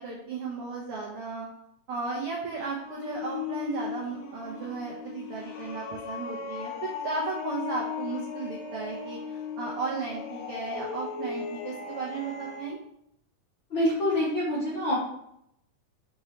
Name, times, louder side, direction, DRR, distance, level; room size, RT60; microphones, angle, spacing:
voice 1, 0.0-1.5 1.9-6.7 7.0-12.8, right 4 dB, 85° right, -3 dB, 1.2 m, -35 dB
sound 1, 2.2-12.7, left 5 dB, 75° left, 1.6 m, -37 dB
voice 2, 13.7-14.9, left 1 dB, 55° left, -5 dB, 1.5 m, -26 dB
6.1 x 5.2 x 3.1 m, 0.76 s
omnidirectional pair, 3.8 m